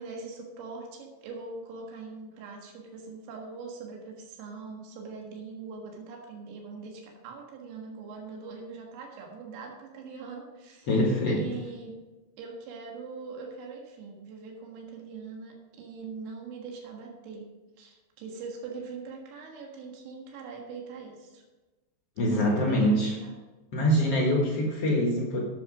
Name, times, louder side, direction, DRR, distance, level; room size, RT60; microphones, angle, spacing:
voice 1, 0.0-11.9 12.4-17.5 17.8-21.4 22.3-23.3, right 4 dB, 80° right, 0 dB, 4.0 m, -42 dB
voice 2, 10.9-11.5 22.2-23.1 23.7-25.4, equal, 70° left, -2 dB, 1.4 m, -24 dB
11.5 x 7.8 x 5.0 m, 1.2 s
omnidirectional pair, 5.2 m